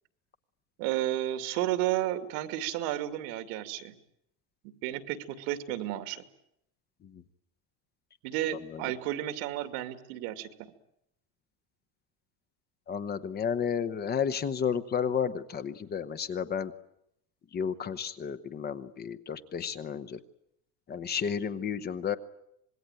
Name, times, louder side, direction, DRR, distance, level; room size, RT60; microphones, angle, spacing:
voice 1, 0.8-3.9 4.8-6.2 8.2-10.7, right 13 dB, 80° right, 10 dB, 2.5 m, -32 dB
voice 2, 12.9-16.7 17.5-20.2 20.9-22.2, left 7 dB, 25° left, 11 dB, 1.0 m, -32 dB
26.0 x 21.0 x 9.2 m, 0.76 s
cardioid pair, 165°, 38 cm